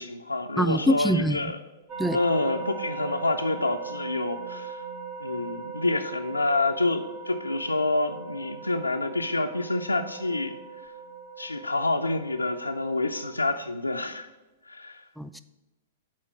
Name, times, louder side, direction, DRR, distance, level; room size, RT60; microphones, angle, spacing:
voice 1, 0.0-1.6 2.1-4.8 5.2-10.6 11.4-14.3 14.7-15.0, left 2 dB, 90° left, 4 dB, 0.4 m, -28 dB
voice 2, 0.6-1.4 2.0-2.2 15.2-15.4, equal, ahead, 11 dB, 0.3 m, -24 dB
sound 1, 1.9-13.4, right 5 dB, 35° right, 1.8 m, -39 dB
7.4 x 4.3 x 5.9 m, 1.1 s
figure-of-eight pair, 105°, 0 cm